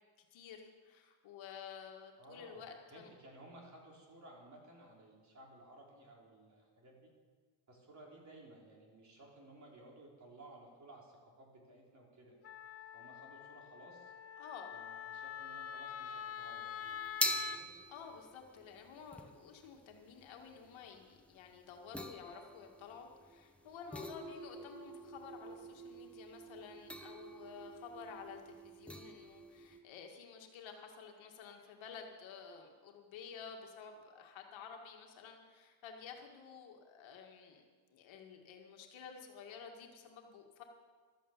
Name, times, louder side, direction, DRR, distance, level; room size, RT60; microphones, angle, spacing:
voice 1, 0.3-3.1 14.4-14.7 17.1-17.2 17.9-37.6 37.9-40.6, left 6 dB, 70° left, 2 dB, 2.1 m, -52 dB
voice 2, 2.2-7.1 7.7-12.4 12.9-14.1 14.7-16.7 17.1-17.7, right 1 dB, 35° right, -2 dB, 3.9 m, -57 dB
Wind instrument woodwind instrument, 12.4-17.6, left 9 dB, 30° left, 0.6 m, -45 dB
sound 1, 16.8-29.8, equal, ahead, 0.8 m, -44 dB
13.0 x 8.7 x 7.3 m, 1.5 s
cardioid pair, 110°, 49 cm